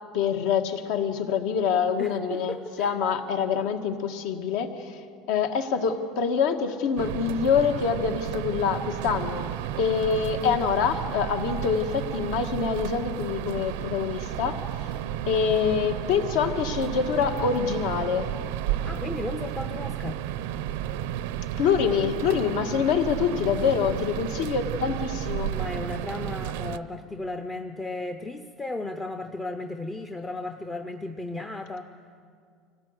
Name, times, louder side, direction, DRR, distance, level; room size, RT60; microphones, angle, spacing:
voice 1, 0.1-5.0 5.3-9.4 9.8-14.6 15.3-18.3 21.6-25.5, left 6 dB, 70° left, 6 dB, 1.6 m, -25 dB
voice 2, 2.0-2.9 18.8-20.2 25.5-31.9, left 2 dB, 10° left, 6 dB, 0.5 m, -35 dB
sound 1, 7.0-26.8, right 11 dB, 85° right, 0.7 m, -32 dB
25.0 x 17.0 x 8.0 m, 2.3 s
cardioid pair, 175°, 0 cm